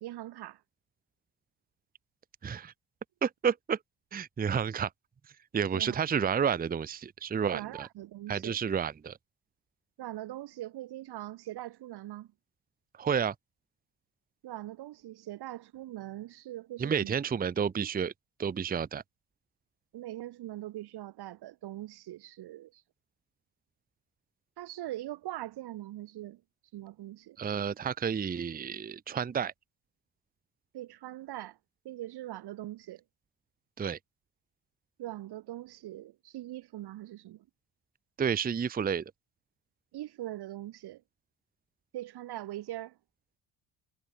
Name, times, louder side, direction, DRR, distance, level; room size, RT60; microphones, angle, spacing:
voice 1, 0.0-0.6 5.7-6.0 7.5-8.6 10.0-12.3 14.4-17.2 19.9-22.8 24.6-26.4 26.7-27.4 30.7-31.6 31.8-33.0 35.0-37.5 39.9-41.0 41.9-43.0, right 14 dB, 60° right, 0.9 m, -41 dB
voice 2, 2.4-2.7 3.2-3.8 4.1-4.9 5.5-7.9 8.3-9.2 13.0-13.3 16.8-18.1 18.4-19.0 27.4-29.5 33.8-34.0 38.2-39.0, right 7 dB, 20° right, 0.7 m, -30 dB
cardioid pair, 85°, 44 cm